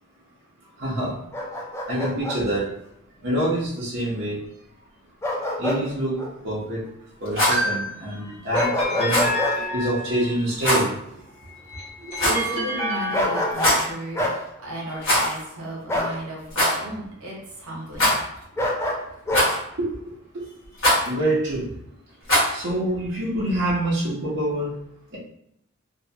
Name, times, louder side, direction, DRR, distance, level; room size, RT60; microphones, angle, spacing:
voice 1, 0.8-1.1 1.9-2.7 3.2-4.4 5.6-6.2 6.4-6.8 7.2-9.3 9.7-10.9 12.0-12.3 19.8-20.4 21.0-21.7 22.5-24.7 25.1-25.2, right 1 dB, 55° right, -8 dB, 0.7 m, -26 dB
Bark, 1.3-2.4 5.2-5.8 6.2-6.3 8.5-9.6 13.1-13.8 14.1-14.4 15.9-16.2 18.6-19.5, left 1 dB, 10° left, 0.3 m, -25 dB
Rattle, 7.2-7.6 9.0-9.3 10.6-10.9 12.1-12.5 13.5-13.9 15.0-15.4 15.7-15.8 16.5-16.8 17.9-18.4 19.3-19.7 20.8-21.1 22.2-22.6, equal, 60° left, 1.2 m, -21 dB
sound 1, 7.9-10.5 11.4-13.9, left 1 dB, 30° left, 0.9 m, -30 dB
voice 2, 11.5-11.9 12.2-19.8, right 1 dB, 80° right, -3 dB, 1.0 m, -36 dB
2.8 x 2.1 x 2.7 m, 0.76 s
head